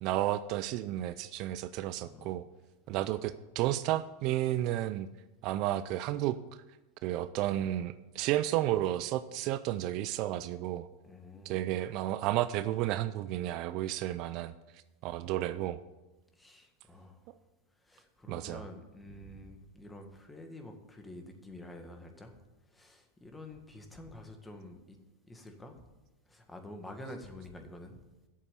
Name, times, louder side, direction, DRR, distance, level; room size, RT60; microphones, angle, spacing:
voice 1, 0.0-2.5 2.9-5.1 5.4-6.4 7.0-10.9 11.4-14.5 15.0-15.8 18.3-18.6, right 14 dB, 55° right, 14 dB, 0.4 m, -32 dB
voice 2, 2.0-2.4 2.9-3.1 11.0-11.6 16.3-17.3 17.8-22.4 22.7-25.0 25.2-25.8 26.3-28.0, left 1 dB, 10° left, 5 dB, 1.8 m, -48 dB
8.5 x 7.2 x 8.4 m, 1.1 s
hypercardioid pair, 110°, 0 cm